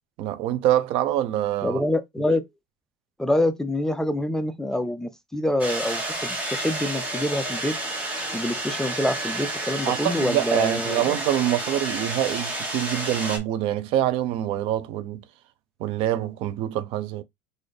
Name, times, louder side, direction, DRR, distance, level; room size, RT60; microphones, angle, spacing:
voice 1, 0.2-1.8 9.8-15.2 15.8-17.2, right 12 dB, 55° right, 0.5 m, -25 dB
voice 2, 1.6-2.4 3.2-7.8 8.3-11.2, left 1 dB, 5° left, 0.4 m, -26 dB
sound 1, 5.6-13.4, right 1 dB, 15° right, 1.3 m, -30 dB
4.0 x 2.5 x 3.3 m
supercardioid pair, 135°, 11 cm